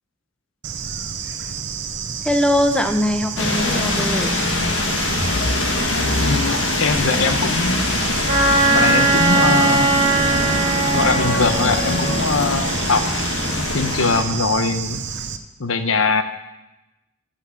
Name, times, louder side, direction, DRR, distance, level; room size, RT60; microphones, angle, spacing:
Bird / Insect, 0.6-15.4, right 6 dB, 60° right, 0.8 m, -30 dB
voice 1, 2.2-4.5, left 1 dB, 5° left, 6 dB, 0.7 m, -21 dB
sound 1, 3.4-14.2, left 2 dB, 65° left, 1.7 m, -22 dB
voice 2, 6.1-7.9 8.7-10.0 10.4-10.6 10.9-13.0 13.7-15.0 15.6-16.2, left 4 dB, 85° left, 9 dB, 1.0 m, -22 dB
Wind instrument woodwind instrument, 8.3-12.1, right 3 dB, 30° right, 4.4 m, -19 dB
14.5 x 5.8 x 7.1 m, 0.99 s
head